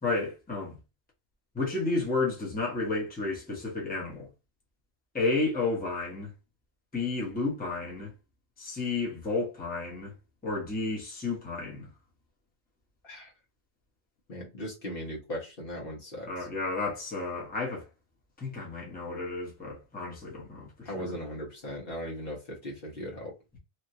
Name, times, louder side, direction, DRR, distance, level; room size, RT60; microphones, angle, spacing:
voice 1, 0.0-0.8 1.5-4.3 5.1-6.3 6.9-8.1 8.6-10.1 10.4-11.9 16.3-17.8 18.4-21.1, left 3 dB, 10° left, 0.8 m, -32 dB
voice 2, 14.3-16.5 20.8-23.3, equal, 55° left, 1.2 m, -38 dB
3.1 x 2.4 x 2.7 m
omnidirectional pair, 1.2 m